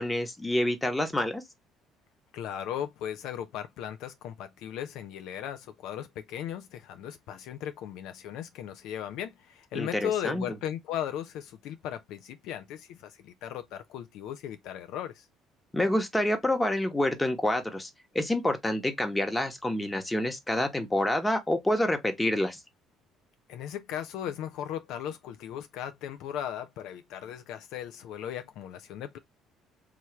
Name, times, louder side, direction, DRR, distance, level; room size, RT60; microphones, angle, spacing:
voice 1, 0.0-1.4 9.7-10.4 15.7-17.9 18.1-22.6, left 1 dB, 10° left, 1.0 m, -27 dB
voice 2, 2.3-15.3 23.5-29.2, left 10 dB, 70° left, 0.3 m, -37 dB
3.2 x 2.3 x 3.0 m
hypercardioid pair, 60°, 0 cm